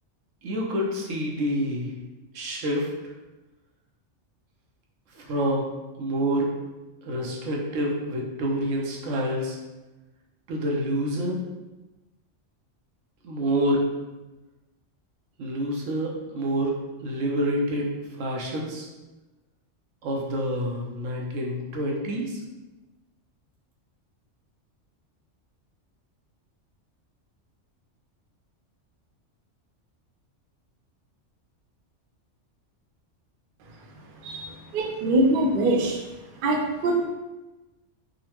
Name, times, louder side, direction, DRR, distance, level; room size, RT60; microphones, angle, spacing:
voice 1, 0.4-1.9 2.3-2.9 5.1-5.7 5.9-6.5 7.0-9.6 10.5-11.4 13.2-13.8 15.4-16.7 17.0-17.9 18.2-18.9 20.0-22.4, equal, 85° right, -1 dB, 1.0 m, -27 dB
voice 2, 34.7-36.0 36.4-37.1, right 1 dB, 60° right, 1 dB, 0.6 m, -23 dB
3.7 x 2.1 x 2.9 m, 1.1 s
omnidirectional pair, 1.3 m